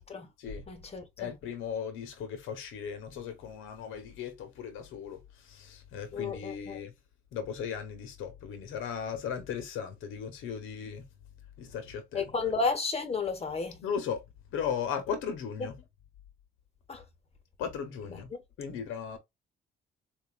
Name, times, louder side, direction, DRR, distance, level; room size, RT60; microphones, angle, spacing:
voice 1, 0.7-1.3 6.1-6.8 12.1-13.8 15.6-15.7 16.9-17.0, left 4 dB, 30° left, 1.4 m, -32 dB
voice 2, 1.2-6.9 7.3-11.1 11.6-12.3 13.8-14.2 14.5-15.8 17.6-18.3 18.6-19.2, left 7 dB, 90° left, 1.1 m, -37 dB
3.9 x 2.6 x 2.4 m
cardioid pair, 90°, 20 cm